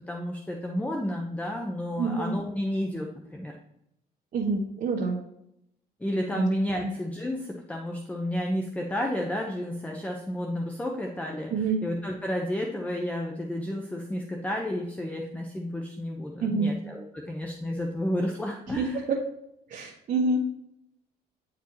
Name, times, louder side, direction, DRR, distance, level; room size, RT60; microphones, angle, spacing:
voice 1, 0.1-3.5 6.0-11.5 11.8-19.0, left 1 dB, 10° left, 1 dB, 1.0 m, -31 dB
voice 2, 2.0-2.3 4.3-5.2 6.3-6.5 6.8-6.9 11.5-11.8 16.4-16.8 18.8-19.2 19.7-20.4, right 3 dB, 50° right, -2 dB, 1.4 m, -27 dB
10.0 x 4.7 x 3.0 m, 0.79 s
cardioid pair, 110°, 17 cm